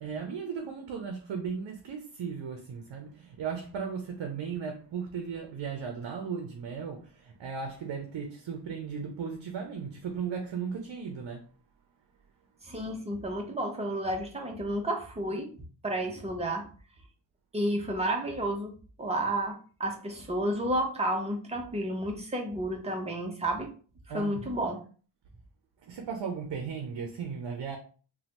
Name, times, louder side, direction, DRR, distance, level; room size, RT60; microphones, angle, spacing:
voice 1, 0.0-11.4 24.1-24.6 25.9-27.8, right 6 dB, 65° right, 0.6 m, -36 dB
voice 2, 12.6-15.5 15.8-16.7 17.5-23.7 24.1-24.8, right 1 dB, 15° right, 0.6 m, -31 dB
3.1 x 2.3 x 2.9 m
wide cardioid pair, 120°, 47 cm